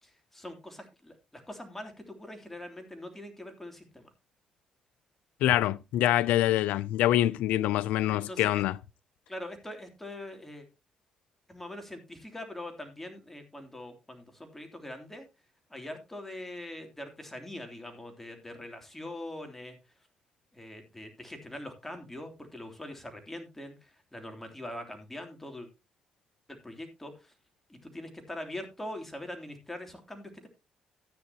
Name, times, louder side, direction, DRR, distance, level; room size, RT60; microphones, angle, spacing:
voice 1, 0.0-4.1 7.2-7.4 8.3-8.6 9.3-10.6 11.5-15.2 15.7-19.8 20.5-25.7 26.6-27.3 27.7-30.5, left 1 dB, 10° left, 3.1 m, -43 dB
voice 2, 5.4-8.8, left 14 dB, 90° left, 0.4 m, -25 dB
13.5 x 9.6 x 2.9 m
cardioid pair, 80°, 2 cm